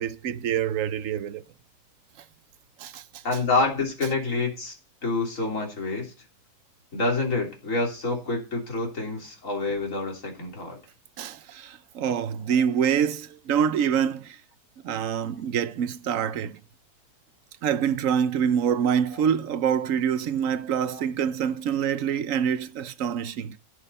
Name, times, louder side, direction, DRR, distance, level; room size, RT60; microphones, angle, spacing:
voice 1, 0.0-1.4 2.8-3.2 11.2-14.4 14.8-16.6 17.6-23.6, right 8 dB, 60° right, 1.0 m, -26 dB
voice 2, 3.2-4.7 5.0-6.1 6.9-10.8 12.5-12.6 19.1-19.2 20.9-21.0, left 3 dB, 50° left, 3.5 m, -27 dB
16.5 x 6.6 x 4.1 m
omnidirectional pair, 1.7 m